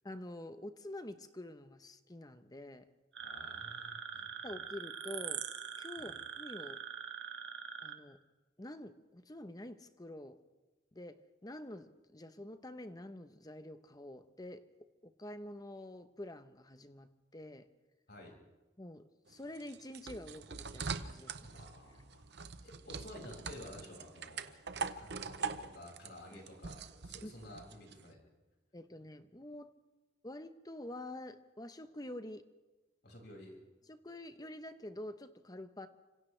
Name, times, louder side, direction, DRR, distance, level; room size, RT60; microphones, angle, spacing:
voice 1, 0.0-2.9 4.4-5.4 5.8-6.8 7.8-8.2 8.6-10.4 10.9-17.7 18.8-21.6 26.3-26.4 27.2-27.3 28.7-29.7 30.2-32.4 33.9-35.9, left 1 dB, 20° left, 10 dB, 1.0 m, -47 dB
sound 1, 3.1-8.0, right 7 dB, 80° right, 1.7 m, -43 dB
voice 2, 3.2-4.5 6.0-6.1 18.1-18.4 21.5-24.6 25.0-28.2 33.0-33.6, left 1 dB, 60° left, -1 dB, 6.3 m, -52 dB
sound 2, 19.3-28.0, right 5 dB, 65° right, 0.9 m, -43 dB
30.0 x 26.5 x 3.4 m, 1.2 s
head